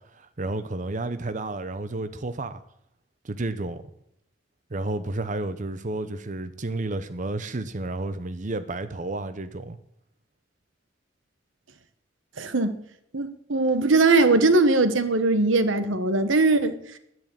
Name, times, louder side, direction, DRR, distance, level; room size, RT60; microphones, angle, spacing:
voice 1, 0.1-2.6 3.2-3.8 4.7-9.8, right 2 dB, 40° right, 0.7 m, -31 dB
voice 2, 12.4-12.8 13.1-16.7, right 3 dB, 90° right, 1.2 m, -20 dB
10.5 x 10.5 x 7.6 m
head